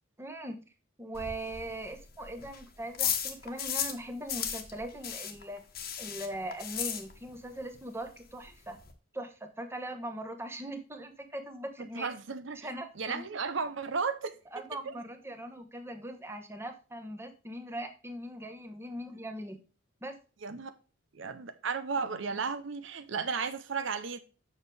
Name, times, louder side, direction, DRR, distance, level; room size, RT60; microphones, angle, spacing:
voice 1, 0.2-0.6 1.0-5.6 6.0-8.8 9.1-12.1 12.6-13.2 14.5-19.6 20.0-20.1, right 1 dB, 10° right, 1.1 m, -40 dB
sound 1, 1.1-4.0 4.3-7.5 7.7-7.8 8.2-8.3 8.4-8.9, left 8 dB, 50° left, 1.2 m, -35 dB
voice 2, 12.0-12.7 13.0-14.4 14.9-15.0 20.4-20.7 21.1-24.2, right 5 dB, 70° right, 0.7 m, -34 dB
7.3 x 6.3 x 3.4 m
head